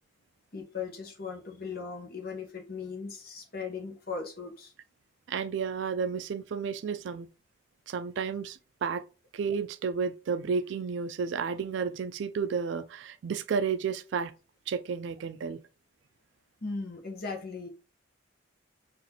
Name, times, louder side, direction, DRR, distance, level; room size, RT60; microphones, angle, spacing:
voice 1, 0.5-4.7 16.6-17.7, left 4 dB, 50° left, 0.9 m, -38 dB
voice 2, 5.3-7.3 7.9-9.0 9.3-14.3 14.7-15.6, right 6 dB, 65° right, 0.3 m, -32 dB
3.9 x 2.5 x 2.8 m
head